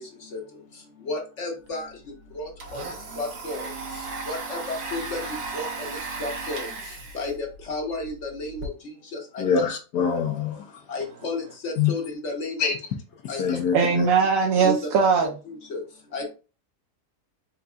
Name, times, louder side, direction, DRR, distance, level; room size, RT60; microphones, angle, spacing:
voice 1, 0.0-9.6 10.9-12.7 13.3-13.6 14.6-14.8 15.5-16.3, left 2 dB, 50° left, 1.2 m, -34 dB
Domestic sounds home sounds, 1.7-1.8 2.0-8.7, right 3 dB, 85° right, 1.7 m, -36 dB
voice 2, 9.4-10.8 11.8-11.9 12.6-12.8 13.4-14.1, left 6 dB, 80° left, 1.4 m, -24 dB
voice 3, 13.7-15.3, right 5 dB, 65° right, 1.0 m, -20 dB
4.5 x 3.9 x 2.4 m
omnidirectional pair, 1.7 m